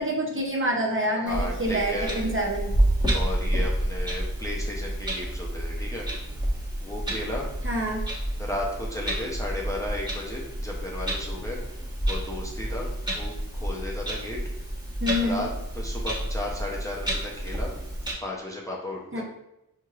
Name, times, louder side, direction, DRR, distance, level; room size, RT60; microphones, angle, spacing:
voice 1, 0.0-2.7 7.6-8.1 15.0-15.5 19.1-19.2, equal, 35° right, -1 dB, 0.7 m, -27 dB
voice 2, 1.1-2.4 3.1-6.1 6.8-7.5 8.4-11.6 12.1-12.9 13.1-14.4 15.2-17.7 18.2-19.2, left 1 dB, 10° left, -3 dB, 0.6 m, -34 dB
Clock, 1.3-18.1, right 1 dB, 10° right, 1.1 m, -29 dB
4.4 x 2.9 x 2.4 m, 0.88 s
wide cardioid pair, 80°, 38 cm